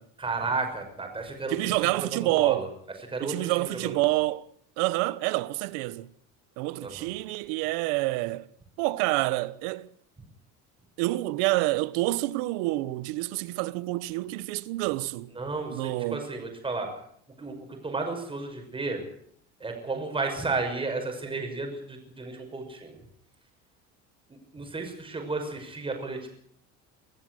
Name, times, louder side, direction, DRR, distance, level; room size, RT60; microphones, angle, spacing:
voice 1, 0.2-2.7 3.1-4.0 6.8-7.1 15.4-16.9 17.4-19.0 19.6-23.0 24.5-26.3, right 3 dB, 15° right, 6.0 m, -33 dB
voice 2, 1.5-2.7 3.2-4.4 4.8-6.1 6.6-8.5 8.8-9.9 11.0-15.3 15.7-16.2, right 19 dB, 85° right, 1.2 m, -28 dB
23.5 x 14.0 x 7.8 m
cardioid pair, 130°, 33 cm